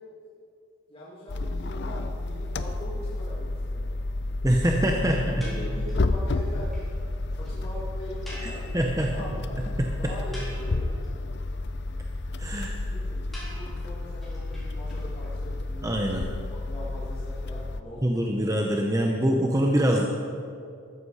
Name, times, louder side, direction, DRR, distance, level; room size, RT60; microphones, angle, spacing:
voice 1, 0.9-4.0 5.0-6.8 7.3-8.8 9.1-9.6 10.0-10.9 12.7-16.3 16.7-18.3 19.8-20.0, left 1 dB, 25° left, -7 dB, 2.0 m, -41 dB
sound 1, 1.3-17.8, left 2 dB, 50° left, 0.6 m, -31 dB
voice 2, 4.4-5.5 8.4-9.1 9.8-10.1 12.4-12.9 15.8-16.2 18.0-20.1, right 1 dB, 15° right, 1 dB, 0.8 m, -25 dB
sound 2, 5.4-6.1 6.4-6.5 6.7-6.9 7.1-7.2 7.4-7.5 8.2-9.3 9.6-9.7 10.1-11.1 13.3-15.3, equal, ahead, 3.9 m, -45 dB
14.0 x 13.5 x 4.9 m, 2.4 s
head